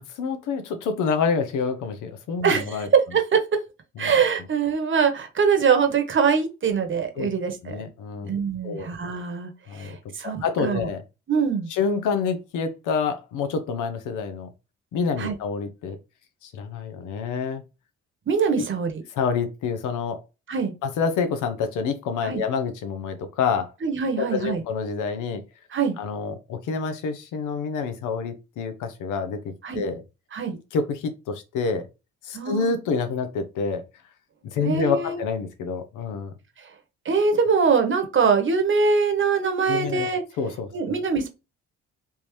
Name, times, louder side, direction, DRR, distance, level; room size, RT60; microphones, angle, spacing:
voice 1, 0.0-2.9 4.0-4.1 7.2-7.3 7.6-8.3 8.6-8.9 9.7-10.0 10.2-11.0 11.7-14.5 14.9-16.0 16.4-17.6 18.6-18.7 19.1-20.2 20.8-23.7 24.2-25.4 26.0-30.0 30.7-31.9 32.2-33.8 34.5-36.3 39.7-40.1 40.4-40.7, left 5 dB, 85° left, 0.8 m, -27 dB
voice 2, 2.4-3.6 4.0-7.8 8.3-10.9 11.3-11.7 15.2-15.3 18.3-19.0 20.5-20.7 22.2-22.4 23.8-24.6 25.7-26.0 29.6-29.8 30.3-30.6 32.3-32.7 34.6-35.2 36.6-36.7 37.0-40.2 40.7-41.3, right 5 dB, 40° right, 1.0 m, -23 dB
3.4 x 2.8 x 3.1 m
cardioid pair, 90°, 30 cm